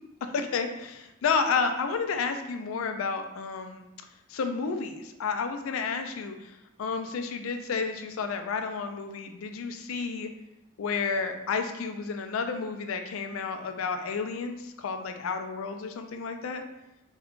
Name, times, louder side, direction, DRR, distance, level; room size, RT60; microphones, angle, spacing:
voice 1, 0.2-3.9 4.3-10.3 10.8-16.6, left 5 dB, 85° left, 6 dB, 0.4 m, -31 dB
3.5 x 2.3 x 3.7 m, 0.94 s
head